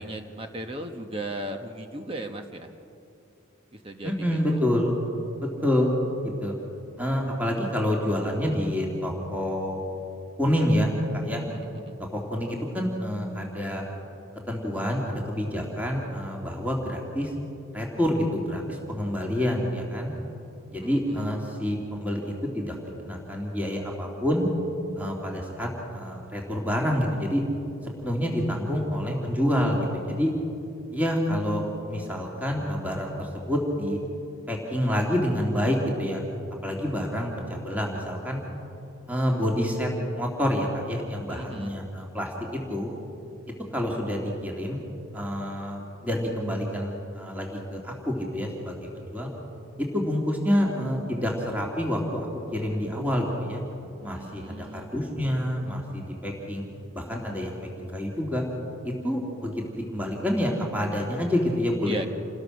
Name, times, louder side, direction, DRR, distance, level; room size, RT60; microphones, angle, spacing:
voice 1, 0.0-2.7 3.7-4.6 11.3-12.0 20.8-21.2 41.3-41.7 54.0-54.9 61.9-62.1, right 1 dB, 25° right, 5 dB, 1.1 m, -37 dB
voice 2, 4.0-5.0 5.6-5.9 6.2-6.5 7.0-9.8 10.4-11.4 12.1-13.8 14.5-17.3 17.7-20.1 20.7-24.5 25.0-27.4 28.0-30.3 30.9-34.0 34.5-36.2 36.6-38.4 39.1-42.9 43.7-44.8 45.1-49.3 49.8-52.3 52.5-53.6 54.0-56.6 56.9-58.4 58.8-62.1, equal, 5° right, -1 dB, 2.7 m, -28 dB
28.5 x 19.5 x 6.4 m, 2.7 s
head